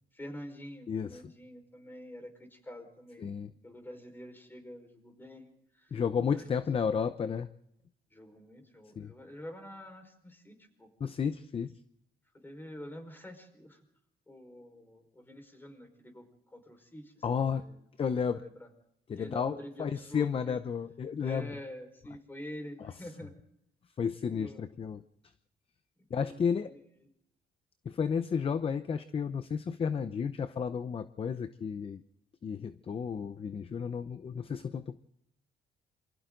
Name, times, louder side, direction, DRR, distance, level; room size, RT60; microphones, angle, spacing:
voice 1, 0.1-3.3 3.6-6.5 8.1-10.9 12.4-13.8 14.3-17.8 18.2-18.7 19.2-20.6 21.2-23.3 24.3-24.6 26.1-26.7, equal, 10° left, 6 dB, 4.9 m, -47 dB
voice 2, 0.9-1.2 3.2-3.5 5.9-7.5 9.0-9.1 11.0-11.7 17.2-17.6 18.0-18.4 19.1-21.5 24.0-25.0 26.1-26.7 27.9-32.0 32.4-35.0, left 6 dB, 30° left, 12 dB, 0.8 m, -32 dB
27.5 x 25.0 x 3.9 m, 0.76 s
cardioid pair, 125°, 18 cm